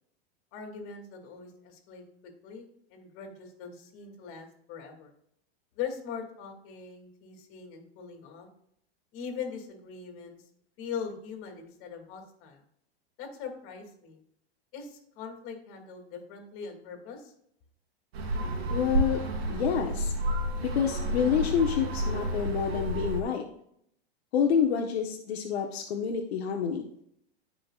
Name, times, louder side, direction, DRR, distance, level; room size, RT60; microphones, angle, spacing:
voice 1, 0.5-2.0 2.4-5.1 5.7-8.5 9.1-10.4 10.8-12.6 13.2-14.2 14.7-17.3, left 6 dB, 45° left, 3 dB, 2.8 m, -41 dB
sound 1, 18.1-23.2, right 1 dB, 80° right, 2.7 m, -30 dB
voice 2, 18.7-19.2 19.5-20.1 20.6-23.4 24.3-26.9, left 7 dB, 80° left, 2 dB, 1.3 m, -28 dB
17.0 x 5.7 x 2.5 m, 0.72 s
supercardioid pair, 135°, 31 cm